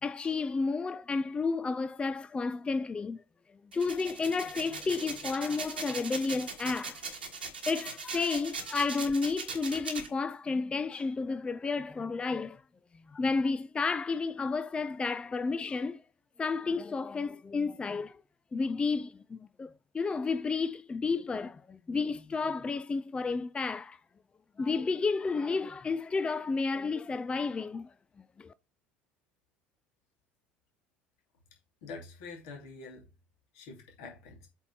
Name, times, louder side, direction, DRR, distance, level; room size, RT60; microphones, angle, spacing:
voice 1, 0.0-3.2 3.7-7.0 7.7-12.6 13.1-16.0 16.4-18.2 18.5-24.0 24.6-27.9 28.4-28.5, left 4 dB, 20° left, 0.5 m, -31 dB
sound 1, 3.7-10.1, right 4 dB, 85° right, 1.5 m, -39 dB
voice 2, 31.8-33.1 33.5-34.5, left 4 dB, 60° left, 2.6 m, -46 dB
8.0 x 4.2 x 4.7 m
figure-of-eight pair, 65°, 5 cm